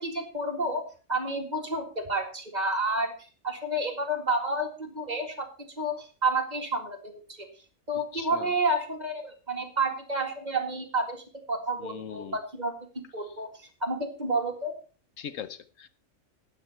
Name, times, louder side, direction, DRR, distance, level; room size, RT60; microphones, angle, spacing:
voice 1, 0.0-3.1 3.4-5.5 5.8-7.5 7.9-12.7 13.1-13.5 13.8-14.7, right 2 dB, 35° right, 3 dB, 2.2 m, -30 dB
voice 2, 8.1-8.5 11.8-12.4 15.2-15.9, left 8 dB, 80° left, 13 dB, 1.2 m, -40 dB
12.5 x 9.7 x 4.4 m, 0.35 s
omnidirectional pair, 1.3 m